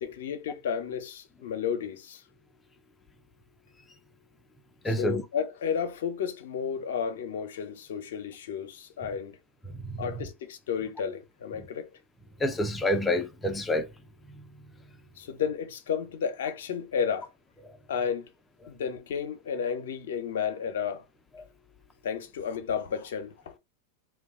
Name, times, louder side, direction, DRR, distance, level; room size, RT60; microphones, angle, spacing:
voice 1, 0.0-2.2 4.9-9.4 10.0-11.9 15.2-17.3 17.9-18.3 18.7-21.0 22.0-23.6, left 7 dB, 70° left, 0.7 m, -32 dB
voice 2, 4.8-5.2 9.7-10.3 11.6-11.7 12.4-13.9 17.6-17.8 21.4-21.5, left 1 dB, 15° left, 0.6 m, -29 dB
2.3 x 2.3 x 3.6 m
hypercardioid pair, 105°, 0 cm